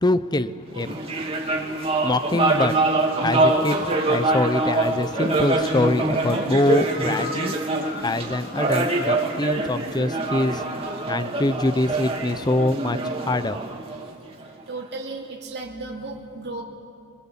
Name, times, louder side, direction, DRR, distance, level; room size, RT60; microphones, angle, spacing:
voice 1, 0.0-1.0 2.0-2.8 3.2-3.8 4.1-7.5 8.0-10.6 11.1-13.0 13.3-13.6, left 2 dB, 20° left, 13 dB, 0.7 m, -24 dB
sound 1, 0.7-14.4, right 2 dB, 30° right, 2.5 m, -24 dB
voice 2, 0.9-1.9 3.2-3.3 10.5-11.1 13.0-13.2 14.3-16.6, right 3 dB, 55° right, -2 dB, 2.9 m, -37 dB
sound 2, 3.8-10.8, left 1 dB, 50° left, 2.0 m, -40 dB
29.0 x 21.5 x 7.4 m, 2.5 s
head